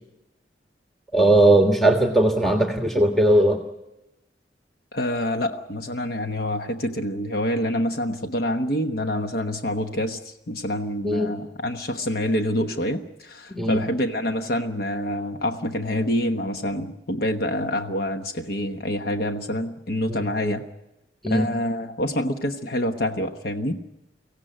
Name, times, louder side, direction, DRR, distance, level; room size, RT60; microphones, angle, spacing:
voice 1, 1.1-3.6 11.0-11.3 13.5-13.8 20.1-20.2 21.2-21.4, right 1 dB, ahead, 3 dB, 1.5 m, -18 dB
voice 2, 4.9-20.6 21.2-23.8, left 1 dB, 60° left, 6 dB, 1.2 m, -26 dB
24.0 x 17.0 x 9.0 m, 0.95 s
head